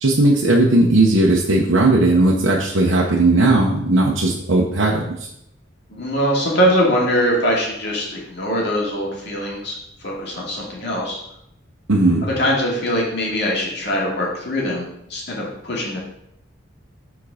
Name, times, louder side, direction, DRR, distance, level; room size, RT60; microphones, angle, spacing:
voice 1, 0.0-5.0 11.9-12.3, right 2 dB, 75° right, -3 dB, 1.0 m, -16 dB
voice 2, 5.9-9.7 10.0-11.2 12.2-16.0, equal, 60° left, -3 dB, 2.4 m, -22 dB
7.1 x 4.6 x 5.0 m, 0.78 s
head